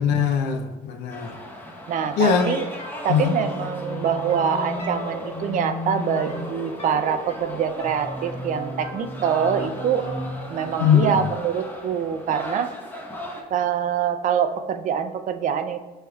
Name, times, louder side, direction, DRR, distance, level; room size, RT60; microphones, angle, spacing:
voice 1, 0.0-1.3 2.2-2.6 3.1-3.3 10.8-11.1, left 7 dB, 85° left, 5 dB, 0.5 m, -20 dB
sound 1, 1.1-13.4, left 1 dB, 10° left, 0.8 m, -37 dB
voice 2, 1.9-2.7 3.0-10.0 10.5-12.7 13.5-15.8, right 8 dB, 50° right, 8 dB, 0.4 m, -25 dB
sound 2, 2.8-12.3, left 1 dB, 40° left, 1.4 m, -35 dB
6.1 x 3.2 x 2.3 m, 1.2 s
cardioid pair, 110°, 17 cm